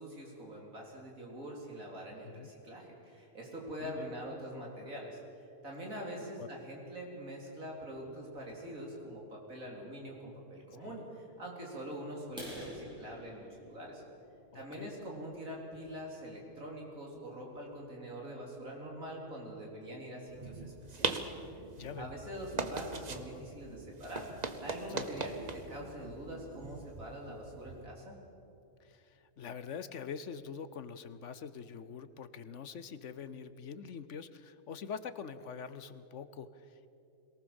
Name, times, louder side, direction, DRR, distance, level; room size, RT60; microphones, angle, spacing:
voice 1, 0.0-14.0 14.5-21.3 22.0-24.3 24.6-28.2, equal, 80° right, -2 dB, 4.3 m, -44 dB
sound 1, 12.3-16.0 16.6-16.7 17.2-17.3 17.7-17.9 18.2-18.3 18.8-18.9 19.1-19.6, equal, 5° right, 6.7 m, -49 dB
voice 2, 14.5-14.9 21.8-22.1 24.9-25.1 28.8-36.9, left 6 dB, 65° left, 13 dB, 1.1 m, -44 dB
sound 2, 20.3-27.8, right 4 dB, 35° right, 1.0 m, -41 dB
22.5 x 18.5 x 7.1 m, 2.8 s
omnidirectional pair, 1.4 m